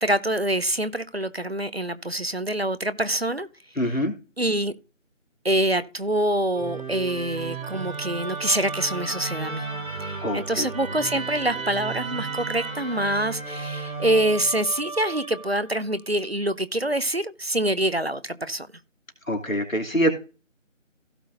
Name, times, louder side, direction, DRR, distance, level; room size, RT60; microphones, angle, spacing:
voice 1, 0.0-3.5 4.4-4.7 5.4-9.7 10.0-18.7, right 1 dB, 50° right, 0.7 m, -25 dB
voice 2, 3.8-4.1 10.2-10.7 19.3-20.1, equal, 85° left, 2.8 m, -24 dB
Musical instrument, 6.5-15.8, right 4 dB, 90° right, 2.4 m, -34 dB
16.5 x 6.1 x 2.6 m
figure-of-eight pair, 175°, 39 cm